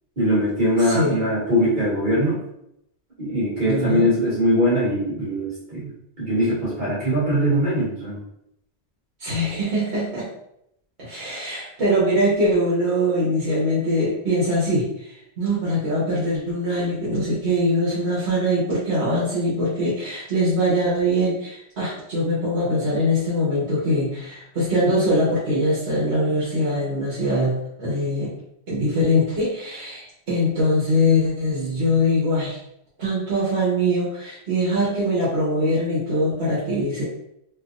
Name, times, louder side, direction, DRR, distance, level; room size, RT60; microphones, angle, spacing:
voice 1, 0.2-2.4 3.2-8.2, equal, 45° right, -8 dB, 1.6 m, -21 dB
voice 2, 0.8-1.2 3.6-4.1 9.2-10.3 11.0-28.3 28.7-32.6 33.0-37.0, equal, 70° right, -9 dB, 1.3 m, -22 dB
3.3 x 2.9 x 2.4 m, 0.78 s
omnidirectional pair, 1.2 m